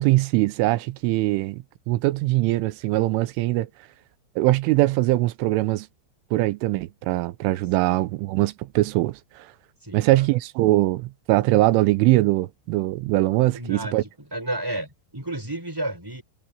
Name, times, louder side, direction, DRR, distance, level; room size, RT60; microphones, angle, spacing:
voice 1, 0.0-3.7 4.4-5.9 6.3-9.5 9.9-14.0, right 18 dB, 90° right, 3.3 m, -22 dB
voice 2, 9.8-10.3 13.5-16.2, right 1 dB, 5° right, 5.8 m, -32 dB
omnidirectional pair, 5.6 m